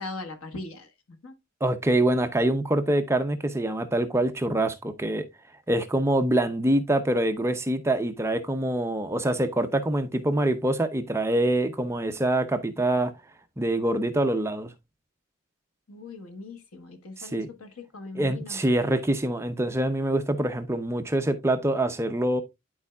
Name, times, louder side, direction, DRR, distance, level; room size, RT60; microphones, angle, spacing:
voice 1, 0.0-1.3 15.9-18.6, left 3 dB, 80° left, 1.3 m, -40 dB
voice 2, 1.6-5.2 5.7-13.1 13.6-14.7 17.2-17.5 18.1-22.4, right 1 dB, 10° right, 0.6 m, -25 dB
11.0 x 4.5 x 2.3 m
head